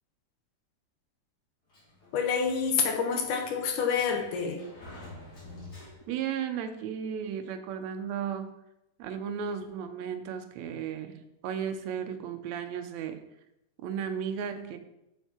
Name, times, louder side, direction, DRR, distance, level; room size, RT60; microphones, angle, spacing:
Sliding door, 1.7-6.4, left 2 dB, 30° left, 3.2 m, -49 dB
voice 1, 2.1-4.6, left 6 dB, 75° left, 4 dB, 2.4 m, -28 dB
voice 2, 6.1-8.5 9.0-13.2 13.8-14.8, right 8 dB, 75° right, 8 dB, 1.8 m, -34 dB
8.0 x 7.4 x 4.4 m, 0.87 s
omnidirectional pair, 3.7 m